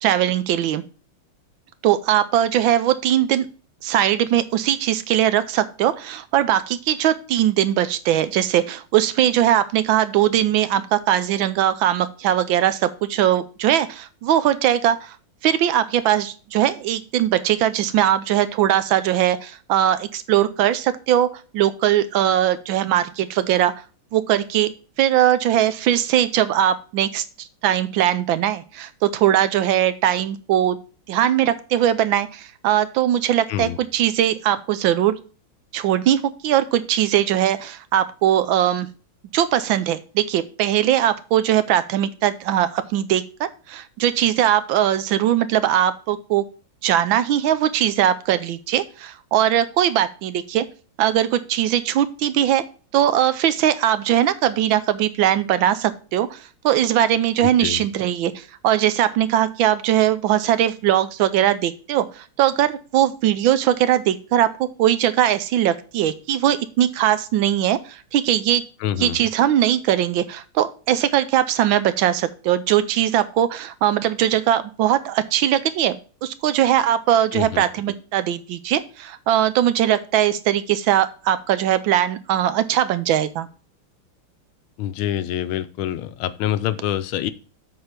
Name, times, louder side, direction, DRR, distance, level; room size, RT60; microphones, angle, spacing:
voice 1, 0.0-0.8 1.8-3.5 3.8-15.1 15.4-23.7 24.1-24.7 25.0-30.8 31.1-35.1 35.7-38.9 39.3-46.4 46.8-50.7 51.0-52.6 52.9-64.5 64.8-68.6 69.0-76.0 76.2-83.5, right 11 dB, 75° right, 13 dB, 1.3 m, -20 dB
voice 2, 57.4-57.8 68.8-69.2 77.3-77.6 84.8-87.3, left 11 dB, 80° left, 12 dB, 1.4 m, -26 dB
7.9 x 4.1 x 6.6 m, 0.36 s
omnidirectional pair, 2.3 m